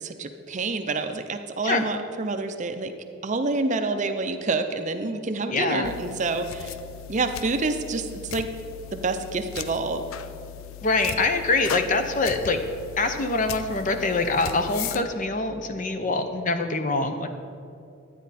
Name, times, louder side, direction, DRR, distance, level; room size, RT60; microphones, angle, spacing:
voice 1, 0.0-2.9 3.2-6.8 7.1-8.5 8.9-10.0, right 3 dB, 35° right, 7 dB, 0.5 m, -28 dB
voice 2, 5.5-6.0 10.8-12.6 13.0-17.3, left 3 dB, 40° left, 7 dB, 0.7 m, -24 dB
Handling Bottle, 5.8-15.0, left 10 dB, 75° left, 0.4 m, -38 dB
11.5 x 9.2 x 4.2 m, 2.6 s
head